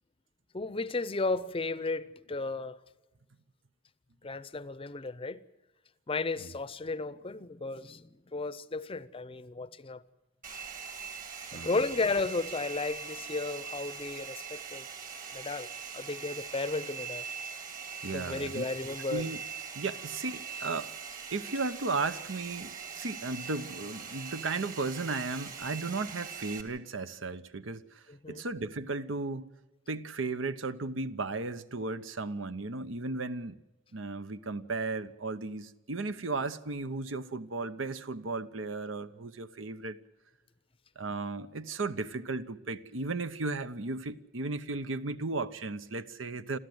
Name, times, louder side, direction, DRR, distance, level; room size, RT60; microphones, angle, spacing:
voice 1, 0.5-2.8 4.2-5.4 6.1-10.0 11.5-14.9 15.3-17.3 18.1-19.3 28.1-28.5, left 3 dB, 30° left, 0.6 m, -34 dB
Domestic sounds home sounds, 10.4-26.6, right 6 dB, 45° right, 2.6 m, -42 dB
voice 2, 18.0-18.6 19.1-19.4 19.7-20.9 21.3-29.5 29.9-33.6 33.9-40.0 41.0-46.6, right 3 dB, 80° right, 0.9 m, -35 dB
27.5 x 13.5 x 7.9 m
head